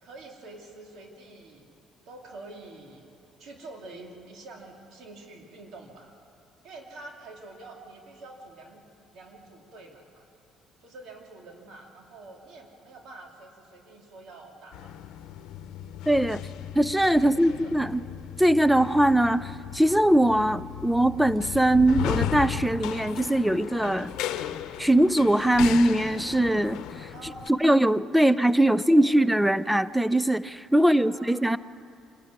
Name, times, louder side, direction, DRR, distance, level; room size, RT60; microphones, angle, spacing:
voice 1, 0.0-1.7 2.1-3.1 3.4-6.1 6.6-8.8 9.1-10.3 10.8-15.0 17.2-17.9 27.1-27.8 28.2-29.1 30.8-31.6, right 2 dB, 65° right, 1 dB, 2.7 m, -46 dB
sound 1, 14.7-27.5, left 10 dB, 80° left, 0.8 m, -36 dB
voice 2, 16.1-16.4 16.7-18.0 18.4-24.1 24.8-27.1 27.6-31.6, right 1 dB, 5° right, 16 dB, 0.5 m, -21 dB
25.5 x 12.0 x 9.5 m, 2.5 s
cardioid pair, 105°, 0 cm